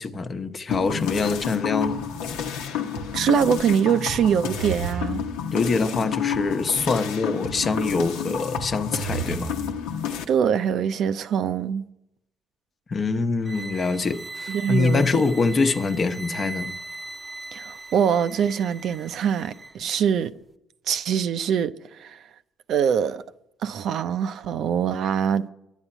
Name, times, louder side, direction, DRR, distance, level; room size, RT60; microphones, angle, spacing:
voice 1, 0.0-2.1 5.5-9.6 12.9-16.8, left 4 dB, 40° left, 0.9 m, -24 dB
sound 1, 0.7-10.2, left 5 dB, 75° left, 1.0 m, -29 dB
voice 2, 3.1-5.3 10.3-11.9 14.5-15.2 17.5-20.3 20.9-22.2 22.7-23.2 23.6-25.5, right 8 dB, 60° right, 0.6 m, -23 dB
sound 2, 13.4-19.8, right 3 dB, 20° right, 0.7 m, -39 dB
10.5 x 8.3 x 9.9 m
hypercardioid pair, 55°, 0 cm